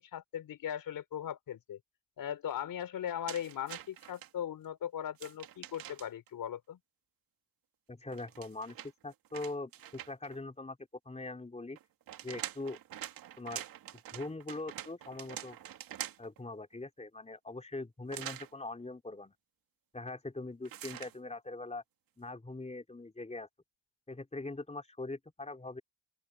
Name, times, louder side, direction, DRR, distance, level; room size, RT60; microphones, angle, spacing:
voice 1, 0.0-1.8 2.2-6.8, left 10 dB, 80° left, 5.0 m, -39 dB
sound 1, 3.3-4.3 5.1-6.3 8.1-10.4 11.8-16.4 18.1-18.5 20.6-21.2, right 12 dB, 90° right, 2.4 m, -45 dB
voice 2, 7.9-8.8 9.0-10.8 11.1-11.8 12.2-12.8 13.4-13.6 14.1-15.6 16.2-19.3 19.9-21.8 22.2-23.5 24.1-25.8, left 2 dB, 20° left, 3.8 m, -42 dB
open air
cardioid pair, 70°, 34 cm